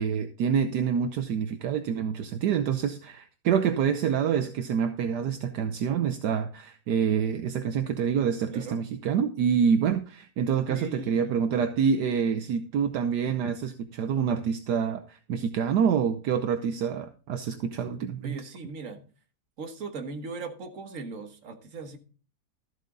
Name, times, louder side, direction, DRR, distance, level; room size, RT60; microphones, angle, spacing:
voice 1, 0.0-18.4, right 7 dB, 75° right, 8 dB, 1.3 m, -27 dB
voice 2, 10.7-11.4 18.2-19.0 19.6-22.0, right 3 dB, 50° right, 6 dB, 1.7 m, -38 dB
13.5 x 8.1 x 3.8 m, 0.37 s
omnidirectional pair, 1.9 m